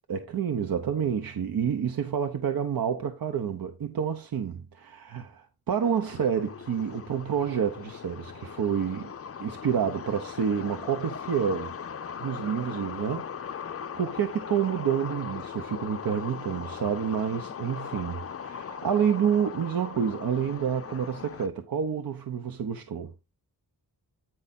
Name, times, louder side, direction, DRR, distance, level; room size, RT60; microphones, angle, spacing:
voice 1, 0.1-9.1 9.4-11.7 12.2-23.1, right 8 dB, 60° right, 0.8 m, -29 dB
sound 1, 5.8-21.5, left 7 dB, 35° left, 0.5 m, -39 dB
8.8 x 4.8 x 4.0 m
wide cardioid pair, 170°, 40 cm